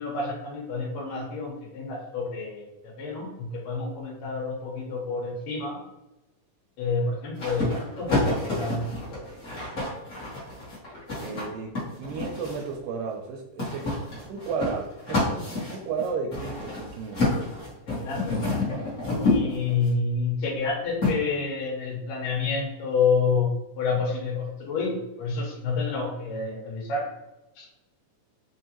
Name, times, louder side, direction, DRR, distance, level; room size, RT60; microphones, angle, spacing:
voice 1, 0.0-5.8 6.8-9.3 17.9-18.7 19.2-27.1 27.6-27.7, left 4 dB, 80° left, -2 dB, 2.5 m, -29 dB
sound 1, 7.4-12.7 13.6-19.9 21.0-21.1, left 2 dB, 40° left, 1.1 m, -29 dB
voice 2, 11.2-13.9 14.2-17.2, right 5 dB, 90° right, 0 dB, 2.2 m, -33 dB
5.3 x 2.6 x 2.9 m, 0.99 s
omnidirectional pair, 3.8 m